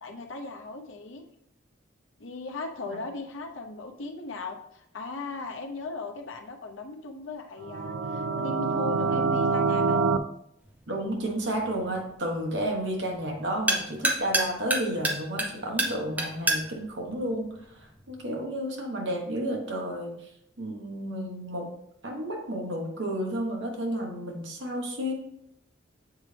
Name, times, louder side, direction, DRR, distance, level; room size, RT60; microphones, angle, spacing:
voice 1, 0.0-1.2 2.2-10.0, left 3 dB, 85° left, 4 dB, 0.8 m, -38 dB
sound 1, 7.6-10.2, right 4 dB, 80° right, 0.4 m, -26 dB
sound 2, 10.6-18.2, right 1 dB, 10° right, 0.8 m, -32 dB
voice 2, 10.9-17.6 18.1-20.2 20.6-21.7 22.0-25.1, right 1 dB, 65° right, 1 dB, 1.3 m, -31 dB
7.3 x 4.2 x 3.3 m, 0.75 s
head